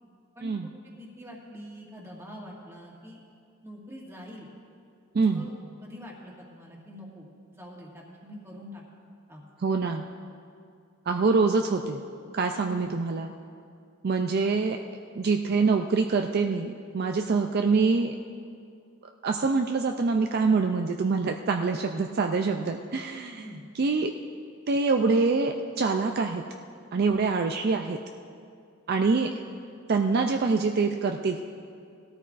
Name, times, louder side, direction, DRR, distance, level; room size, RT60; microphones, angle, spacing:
voice 1, 0.4-3.2 3.6-4.5 5.2-5.5 5.8-7.3 7.5-8.8 9.3-9.4 12.7-12.9 23.4-23.6 27.0-27.3, equal, 15° right, -3 dB, 1.8 m, -45 dB
voice 2, 5.1-5.5 9.6-10.0 11.1-12.0 12.3-13.3 14.0-14.8 15.1-18.2 19.2-23.4 23.8-24.1 24.7-26.4 26.9-28.0 28.9-29.3 29.9-31.4, right 4 dB, 50° right, 4 dB, 0.4 m, -25 dB
18.5 x 13.0 x 2.5 m, 2.4 s
head